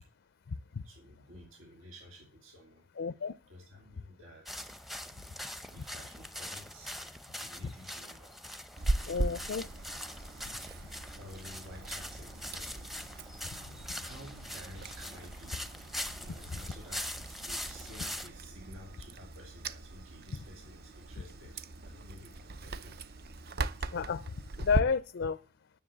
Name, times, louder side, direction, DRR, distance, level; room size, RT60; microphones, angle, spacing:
voice 1, 0.8-2.9 3.5-4.7 5.7-7.0 7.2-8.4 9.1-9.7 10.9-12.9 13.8-15.6 16.2-22.9 23.5-23.6, equal, 80° right, 2.5 m, -53 dB
voice 2, 3.0-3.3 9.1-9.7 23.9-24.2 24.6-25.4, left 5 dB, 60° left, 0.4 m, -30 dB
sound 1, 4.5-18.3, left 1 dB, ahead, 0.7 m, -43 dB
Chewing mastication, 8.8-24.8, right 2 dB, 50° right, 0.6 m, -39 dB
10.5 x 6.8 x 7.4 m
head